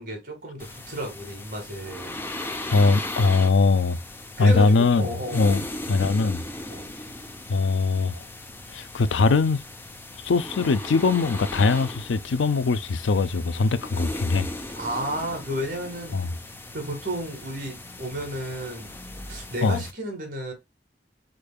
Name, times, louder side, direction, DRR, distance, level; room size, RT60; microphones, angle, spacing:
voice 1, 0.0-2.1 4.4-5.5 6.7-6.9 14.8-16.2 16.7-18.9 19.3-20.5, equal, 45° right, 2.1 m, -32 dB
sound 1, 0.6-19.9, left 1 dB, 10° left, 0.5 m, -38 dB
voice 2, 2.7-4.0 4.4-5.6 5.9-6.4 7.5-8.2 8.7-9.6 10.2-14.5 16.1-16.3 19.6-19.8, left 3 dB, 90° left, 0.5 m, -21 dB
5.1 x 4.5 x 2.2 m
head